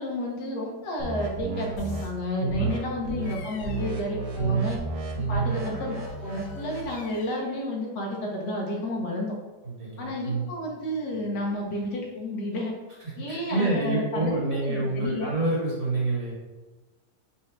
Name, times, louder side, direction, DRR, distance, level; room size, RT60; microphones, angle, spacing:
voice 1, 0.0-4.8 5.3-9.3 10.0-12.7 13.2-15.3, left 1 dB, 65° left, -1 dB, 1.4 m, -31 dB
sound 1, 1.0-2.0 2.5-2.8 3.0-3.3 3.6-6.9, right 2 dB, 90° right, 1.5 m, -33 dB
sound 2, 1.8-2.1 3.3-3.4 3.9-4.0 5.4-6.5, left 1 dB, 45° left, 0.7 m, -48 dB
voice 2, 2.4-2.9 4.3-4.7 5.1-5.6 9.6-10.5 13.0-16.3, right 3 dB, 35° right, -5 dB, 1.3 m, -27 dB
Bird vocalization bird call bird song, 3.2-4.2 6.0-7.6, left 5 dB, 90° left, 0.6 m, -50 dB
4.4 x 2.5 x 4.4 m, 1.2 s
omnidirectional pair, 2.0 m